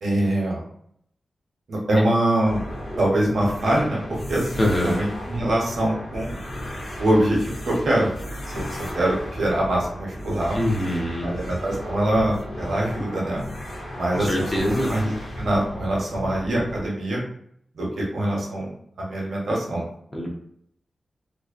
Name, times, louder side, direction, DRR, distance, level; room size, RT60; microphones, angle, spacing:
voice 1, 0.0-0.6 1.7-2.6 3.0-6.4 7.0-8.1 8.5-10.6 11.2-13.4 13.9-17.2 17.7-19.8, right 1 dB, 70° right, -3 dB, 0.8 m, -24 dB
sound 1, 2.4-16.9, equal, 60° left, 0.6 m, -34 dB
voice 2, 4.6-4.9 10.5-11.3 14.1-14.9 20.1-20.3, left 1 dB, 20° left, -2 dB, 0.6 m, -24 dB
2.5 x 2.1 x 2.4 m, 0.68 s
wide cardioid pair, 165°, 0 cm